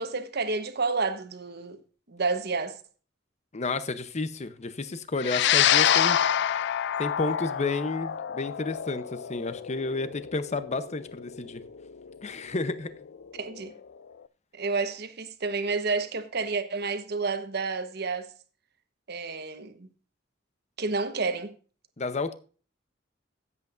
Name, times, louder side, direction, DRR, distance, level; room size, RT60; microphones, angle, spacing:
voice 1, 0.0-1.8 2.1-2.8 13.3-13.7 14.5-18.3 19.1-19.9 20.8-21.5, right 4 dB, 60° right, 1.1 m, -30 dB
voice 2, 3.5-6.2 7.0-11.6 12.2-12.9 22.0-22.3, left 3 dB, 35° left, 0.7 m, -31 dB
sound 1, 5.2-13.8, left 10 dB, 65° left, 0.4 m, -27 dB
16.0 x 8.3 x 2.5 m
head